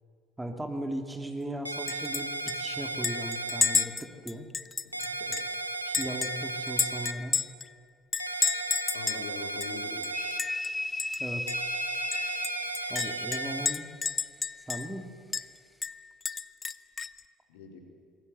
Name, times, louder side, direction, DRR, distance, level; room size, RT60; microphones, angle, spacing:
voice 1, 0.4-4.5 5.8-7.4 11.2-11.5 12.9-13.9 14.7-15.0, right 1 dB, 10° right, 5 dB, 3.2 m, -37 dB
sound 1, 1.7-3.9 4.9-7.1 8.2-10.4 11.5-13.7, right 3 dB, 90° right, 0.9 m, -35 dB
Chink clink, 1.9-2.2 2.5-2.6 3.0-5.5 5.9-7.7 8.1-9.3 9.6-9.7 10.0-10.7 11.0-11.2 11.5-11.6 12.1-15.0 15.3-15.5 15.8-17.2, left 5 dB, 30° left, 0.8 m, -31 dB
voice 2, 4.8-5.4 8.9-10.0 17.5-17.8, left 5 dB, 65° left, 2 dB, 4.1 m, -43 dB
sound 2, 10.1-13.5, left 1 dB, 10° left, 2.1 m, -35 dB
26.5 x 23.0 x 8.1 m, 2.2 s
figure-of-eight pair, 60°, 0 cm